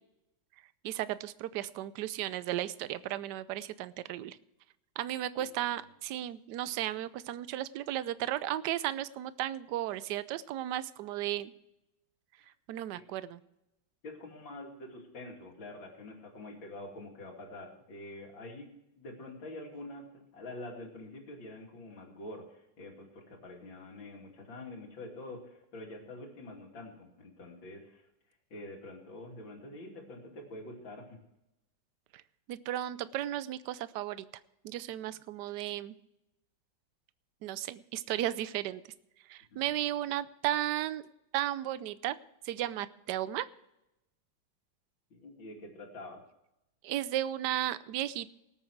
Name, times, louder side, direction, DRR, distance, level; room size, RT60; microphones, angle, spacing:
voice 1, 0.8-4.4 5.0-11.5 12.7-13.4 32.5-34.3 34.6-35.9 37.4-38.8 39.3-42.2 42.4-43.5 46.8-48.3, right 13 dB, 70° right, 16 dB, 1.1 m, -34 dB
voice 2, 5.4-5.7 12.9-13.1 14.0-18.7 19.0-28.0 28.5-31.2 39.6-39.7 45.1-46.2, left 1 dB, 70° left, 1 dB, 3.3 m, -46 dB
18.5 x 8.9 x 4.6 m, 0.88 s
omnidirectional pair, 2.2 m